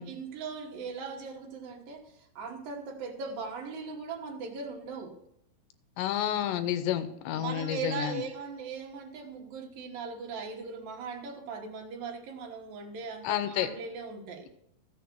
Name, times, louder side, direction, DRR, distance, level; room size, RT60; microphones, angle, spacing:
voice 1, 0.0-5.2 7.3-14.5, right 5 dB, 65° right, 1 dB, 2.7 m, -39 dB
voice 2, 6.0-8.2 13.2-13.7, left 11 dB, 85° left, 9 dB, 2.9 m, -30 dB
14.5 x 6.9 x 6.1 m, 0.77 s
omnidirectional pair, 4.8 m